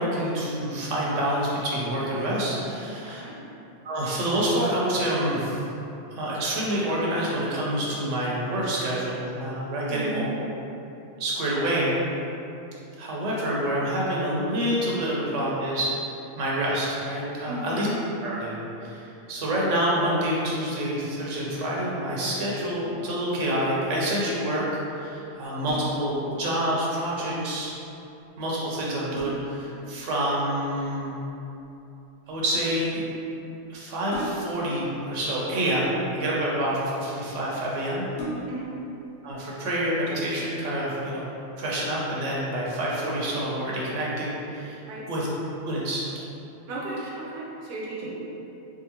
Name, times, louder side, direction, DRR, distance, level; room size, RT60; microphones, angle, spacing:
voice 1, 0.0-3.3 3.8-5.6 6.1-10.3 11.2-11.9 13.0-16.1 16.4-17.9 18.2-27.7 28.4-31.1 32.3-33.0 33.7-38.1 39.2-41.3 41.6-44.8 45.1-45.3 45.6-46.0 47.9-48.0, right 1 dB, 75° right, -5 dB, 1.0 m, -27 dB
voice 2, 3.0-3.4 9.9-10.2 17.4-17.8 38.4-38.7 44.8-45.1 46.7-48.2, right 2 dB, 50° right, -5 dB, 0.6 m, -35 dB
sound 1, 25.6-26.2 28.2-28.3 28.8-29.7 31.3-31.6 34.1-34.7 35.7-36.4 37.1-37.2 37.5-37.6 38.1-38.8 39.3-39.4, right 1 dB, 70° left, 1.1 m, -37 dB
3.7 x 2.5 x 2.8 m, 2.9 s
omnidirectional pair, 1.3 m